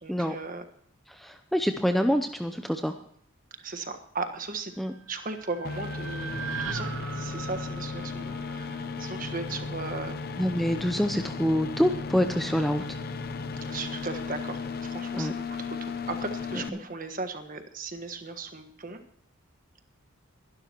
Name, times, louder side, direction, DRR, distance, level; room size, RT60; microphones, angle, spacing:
voice 1, 0.0-0.6 3.6-4.7 5.1-6.9 7.1-10.2 13.7-15.4 15.8-19.0, right 3 dB, 40° right, 7 dB, 1.4 m, -37 dB
voice 2, 1.1-2.9 4.8-4.9 10.4-12.8 15.1-15.3 16.7-16.8, equal, ahead, 6 dB, 0.5 m, -26 dB
sound 1, 4.9-9.2, right 5 dB, 75° right, 1.0 m, -39 dB
sound 2, 5.6-16.7, left 4 dB, 45° left, 0.7 m, -35 dB
22.5 x 12.0 x 2.9 m, 0.66 s
head